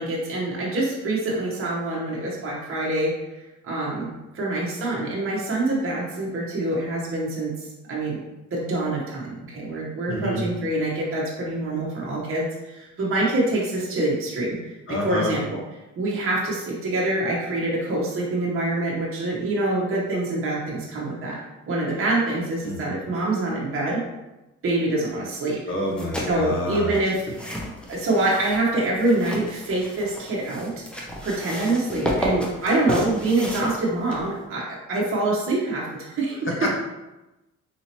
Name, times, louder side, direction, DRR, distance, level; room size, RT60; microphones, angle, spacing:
voice 1, 0.0-3.1 3.6-8.2 8.5-14.6 14.9-15.6 16.0-21.4 21.7-24.0 24.6-25.6 26.3-27.2 27.9-30.7 31.2-36.5, right 2 dB, 45° right, -4 dB, 1.1 m, -25 dB
voice 2, 10.1-10.4 14.9-15.3 22.6-22.9 25.7-26.9 36.6-36.7, left 1 dB, 45° left, -2 dB, 1.2 m, -28 dB
sound 1, 25.8-34.4, equal, 5° left, 0.8 m, -32 dB
4.1 x 2.8 x 2.9 m, 1.0 s
cardioid pair, 90°, 30 cm